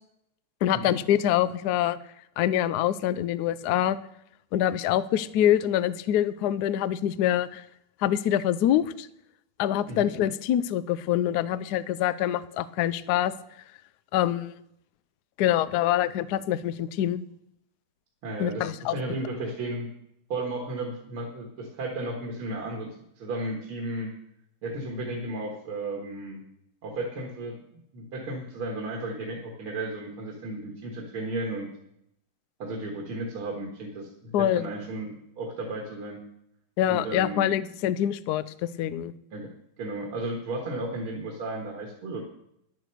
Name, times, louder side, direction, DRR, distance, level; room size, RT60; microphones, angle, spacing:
voice 1, 0.6-2.0 2.4-4.0 4.5-7.6 8.0-9.1 9.6-13.3 14.1-14.6 15.4-17.2 18.4-18.9 34.3-34.7 36.8-39.1, left 11 dB, 80° left, 15 dB, 0.9 m, -25 dB
voice 2, 18.2-19.9 20.3-22.9 23.2-24.1 24.6-26.4 26.8-27.6 27.9-31.7 32.6-36.2 36.9-37.5 39.3-39.5 39.8-42.2, right 2 dB, 75° right, 0 dB, 2.5 m, -34 dB
10.5 x 9.2 x 6.6 m, 0.77 s
omnidirectional pair, 2.4 m